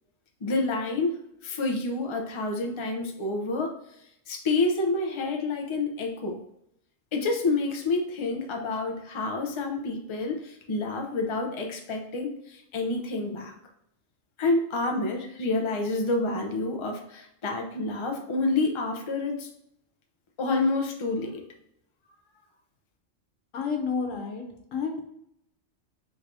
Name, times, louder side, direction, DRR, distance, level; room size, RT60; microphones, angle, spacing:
voice 1, 0.4-3.8 4.3-6.4 7.1-13.5 14.4-19.5 20.4-21.4, left 3 dB, 35° left, 2 dB, 0.5 m, -28 dB
voice 2, 23.5-24.4 24.7-25.0, left 5 dB, 85° left, 1 dB, 1.3 m, -30 dB
3.9 x 2.7 x 4.6 m, 0.74 s
omnidirectional pair, 1.3 m